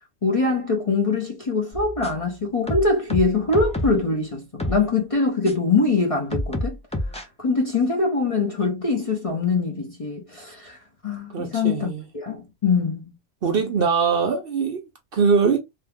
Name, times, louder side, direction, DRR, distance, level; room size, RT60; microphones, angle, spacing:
voice 1, 0.2-6.8 7.1-10.8 11.0-11.9 12.1-13.0, left 3 dB, 35° left, 0.7 m, -23 dB
sound 1, 1.7-2.3 2.7-4.1 4.6-4.8 5.4-5.5 6.3-7.2, left 1 dB, 10° left, 0.3 m, -28 dB
voice 2, 11.3-12.0 13.4-15.6, right 5 dB, 55° right, 0.8 m, -22 dB
2.8 x 2.3 x 3.4 m
omnidirectional pair, 1.3 m